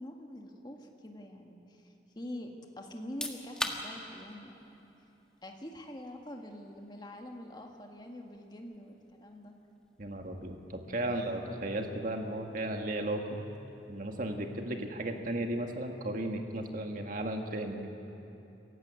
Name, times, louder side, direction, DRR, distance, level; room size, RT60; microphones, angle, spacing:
voice 1, 0.0-4.6 5.4-9.5 11.1-11.2, left 1 dB, 25° left, 2 dB, 1.8 m, -45 dB
sound 1, 3.0-15.6, left 1 dB, 5° left, 1.4 m, -47 dB
voice 2, 10.0-13.4 13.9-17.9, right 1 dB, 50° right, 3 dB, 1.9 m, -35 dB
27.0 x 15.5 x 8.2 m, 2.9 s
head